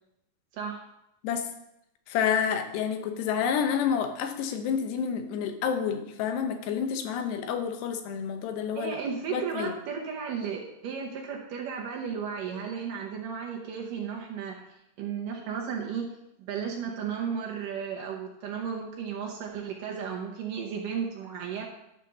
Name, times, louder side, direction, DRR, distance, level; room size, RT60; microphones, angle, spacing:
voice 1, 0.5-0.8 8.8-14.6 15.0-16.1 16.4-21.6, right 7 dB, 70° right, 0 dB, 2.3 m, -34 dB
voice 2, 2.1-9.0 9.3-9.8, left 7 dB, 85° left, 6 dB, 3.0 m, -29 dB
11.5 x 4.1 x 6.6 m, 0.84 s
omnidirectional pair, 4.7 m